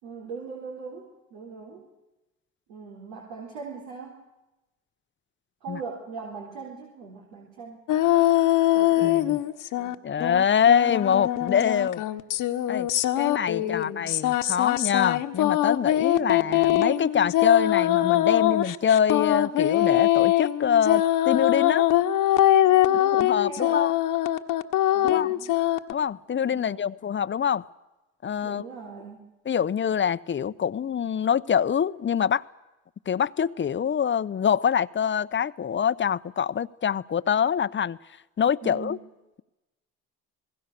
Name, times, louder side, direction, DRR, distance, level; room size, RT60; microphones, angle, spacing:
voice 1, 0.0-1.9 2.7-4.2 5.6-7.9 8.7-9.4 9.8-10.5 13.6-13.9 16.1-16.6 22.8-23.9 24.9-25.5 26.4-26.9 28.4-29.3 38.6-39.1, right 5 dB, 85° right, -1 dB, 4.2 m, -41 dB
sound 1, 7.9-9.9 10.2-25.9, left 13 dB, 65° left, 1.4 m, -22 dB
voice 2, 9.0-9.4 10.0-12.0 12.7-12.9 13.2-21.9 23.1-23.9 25.0-25.3 25.9-27.6 28.2-28.6 29.5-32.4 33.1-38.0 38.4-39.0, left 8 dB, 35° left, 15 dB, 0.8 m, -24 dB
27.0 x 20.5 x 6.9 m, 1.0 s
supercardioid pair, 70°, 34 cm